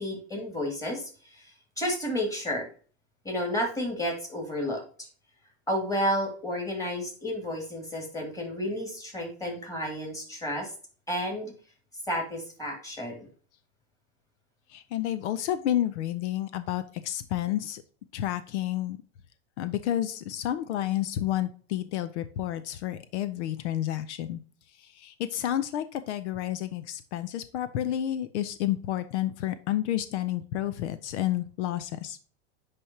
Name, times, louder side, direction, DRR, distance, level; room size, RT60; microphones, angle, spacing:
voice 1, 0.0-1.4 1.8-2.7 3.2-4.8 5.7-10.7 11.1-11.5 12.1-13.2, equal, 10° left, 0 dB, 2.4 m, -31 dB
voice 2, 14.7-17.8 18.1-19.0 19.6-24.4 24.8-32.2, left 12 dB, 80° left, 12 dB, 0.7 m, -30 dB
10.0 x 3.5 x 2.8 m, 0.41 s
supercardioid pair, 140°, 34 cm